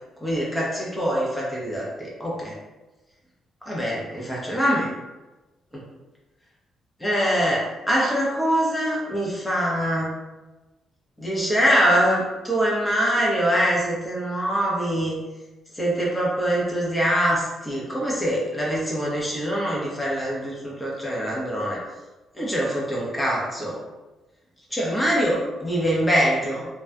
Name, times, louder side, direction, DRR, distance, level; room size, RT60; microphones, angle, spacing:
voice 1, 0.2-2.5 3.6-4.9 5.7-5.8 7.0-10.1 11.2-15.2 15.7-21.8 22.4-23.8 24.7-26.7, equal, 10° left, -5 dB, 1.0 m, -24 dB
3.1 x 2.5 x 2.2 m, 1.1 s
cardioid pair, 90°, 0 cm